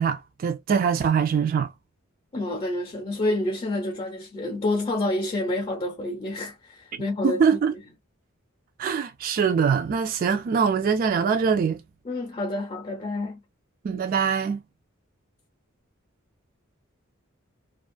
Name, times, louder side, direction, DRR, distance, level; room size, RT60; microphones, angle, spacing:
voice 1, 0.0-1.7 6.9-7.7 8.8-11.8 13.8-14.6, right 6 dB, 45° right, 0.3 m, -23 dB
voice 2, 2.3-7.6 12.0-13.4, left 2 dB, 30° left, 0.6 m, -28 dB
2.4 x 2.3 x 2.5 m
head